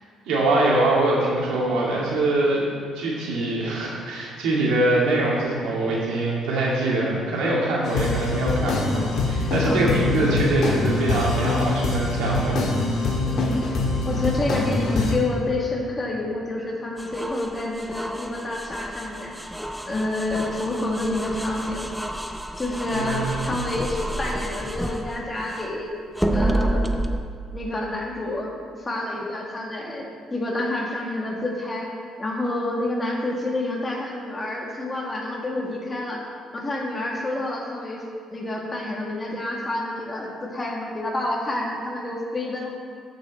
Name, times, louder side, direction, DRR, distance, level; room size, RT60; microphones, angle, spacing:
voice 1, 0.3-12.6 22.9-23.6, right 2 dB, 90° right, -4 dB, 2.2 m, -23 dB
sound 1, 7.8-15.1, left 3 dB, 60° left, 1.6 m, -24 dB
voice 2, 9.6-10.1 13.2-13.8 14.0-19.4 19.9-21.9 22.6-25.9 26.3-26.9 27.5-28.5 28.8-31.9 32.2-36.2 36.5-38.0 38.3-42.7, left 2 dB, 20° left, -1 dB, 1.6 m, -28 dB
sound 2, 17.0-25.8 26.2-27.2, right 1 dB, ahead, 0.5 m, -29 dB
13.0 x 5.5 x 4.1 m, 2.1 s
cardioid pair, 120°, 0 cm